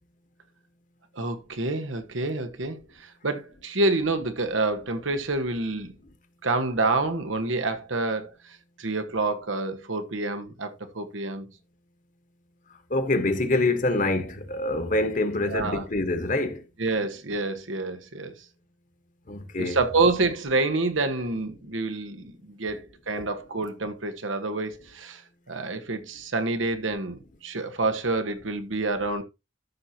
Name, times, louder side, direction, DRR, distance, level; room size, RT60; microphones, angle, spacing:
voice 1, 1.1-5.9 6.4-11.5 15.4-15.9 16.8-18.3 19.6-25.2 25.5-29.2, right 3 dB, 90° right, 1.4 m, -28 dB
voice 2, 12.9-16.6 19.3-19.8, left 2 dB, 40° left, 1.3 m, -25 dB
13.5 x 5.9 x 2.8 m
head